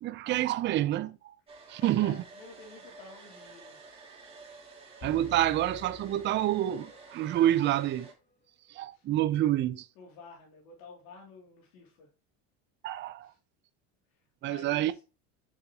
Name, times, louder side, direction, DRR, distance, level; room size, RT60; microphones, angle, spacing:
voice 1, 0.0-1.2 1.7-2.2 5.0-8.1 8.7-9.9 12.8-13.3 14.4-14.9, right 13 dB, 35° right, 0.5 m, -28 dB
Domestic sounds home sounds, 1.5-8.1, right 4 dB, 15° right, 2.3 m, -51 dB
voice 2, 1.8-3.8 8.9-9.1 10.0-12.1 13.2-13.4 14.1-15.0, left 4 dB, 75° left, 2.7 m, -51 dB
sound 1, 5.0-7.1, left 6 dB, 25° left, 0.9 m, -48 dB
7.1 x 6.6 x 2.9 m
cardioid pair, 135°, 34 cm